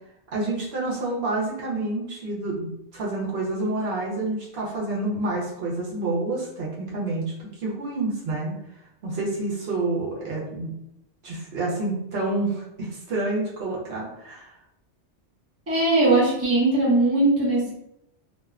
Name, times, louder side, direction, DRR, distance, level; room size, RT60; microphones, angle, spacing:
voice 1, 0.3-8.6 9.0-10.7 11.2-14.5, right 2 dB, 65° right, -4 dB, 0.8 m, -28 dB
voice 2, 15.7-17.7, right 2 dB, 15° right, -7 dB, 0.6 m, -20 dB
2.6 x 2.0 x 2.3 m, 0.79 s
omnidirectional pair, 1.2 m